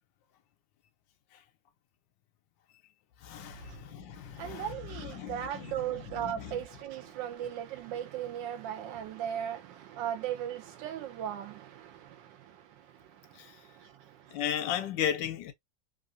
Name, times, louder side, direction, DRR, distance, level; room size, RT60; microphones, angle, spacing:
voice 1, 3.2-6.5 13.3-13.5 14.3-15.5, left 9 dB, 80° left, 1.4 m, -36 dB
voice 2, 4.3-14.4, right 10 dB, 80° right, 1.2 m, -38 dB
3.5 x 2.5 x 2.5 m
omnidirectional pair, 2.0 m